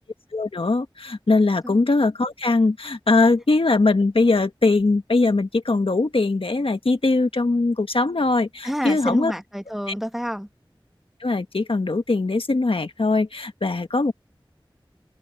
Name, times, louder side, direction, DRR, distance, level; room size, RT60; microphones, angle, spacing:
voice 1, 0.3-9.3 11.2-14.1, left 3 dB, 85° left, 1.5 m, -21 dB
voice 2, 8.6-10.5, equal, 5° right, 1.5 m, -28 dB
wide cardioid pair, 45°, 9 cm